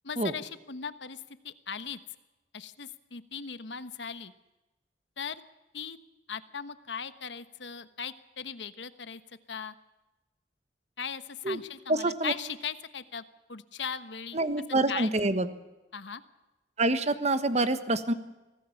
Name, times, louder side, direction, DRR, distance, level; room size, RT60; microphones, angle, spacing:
voice 1, 0.0-2.0 2.5-4.3 5.2-5.4 5.7-6.0 6.3-9.2 9.5-9.7 11.0-13.2 13.5-14.4 14.9-15.1 15.9-16.2, left 6 dB, 85° left, 12 dB, 1.2 m, -38 dB
voice 2, 11.9-12.3 14.3-15.5 16.8-18.1, right 2 dB, 40° right, 11 dB, 1.3 m, -26 dB
25.0 x 17.5 x 7.2 m, 1.1 s
head